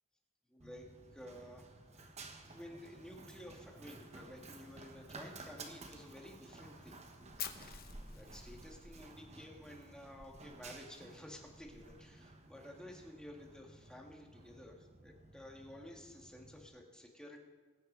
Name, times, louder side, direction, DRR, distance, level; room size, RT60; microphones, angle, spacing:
voice 1, 0.5-1.7 2.0-2.1 2.4-7.0 7.5-7.8 8.1-17.4, left 1 dB, 5° left, 1 dB, 1.7 m, -53 dB
Run, 0.6-16.7, right 2 dB, 30° right, 1.2 m, -54 dB
Fire, 7.4-9.4, left 10 dB, 45° left, 0.9 m, -46 dB
21.5 x 9.4 x 3.9 m, 1.4 s
head